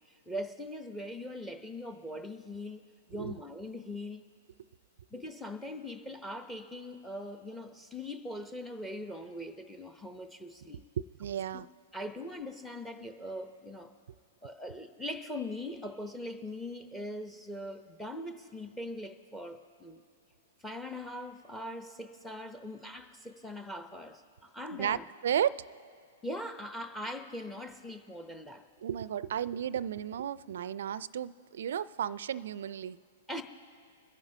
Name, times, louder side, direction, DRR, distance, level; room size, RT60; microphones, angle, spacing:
voice 1, 0.3-2.8 3.1-4.2 5.1-10.8 11.5-11.6 11.9-13.9 14.4-20.0 20.6-25.1 26.2-28.6 33.3-33.4, left 1 dB, 5° left, 8 dB, 0.8 m, -41 dB
voice 2, 11.2-11.7 24.7-25.6 28.8-33.0, right 9 dB, 65° right, 20 dB, 0.4 m, -33 dB
25.0 x 10.5 x 2.8 m, 2.2 s
figure-of-eight pair, 110°, 0 cm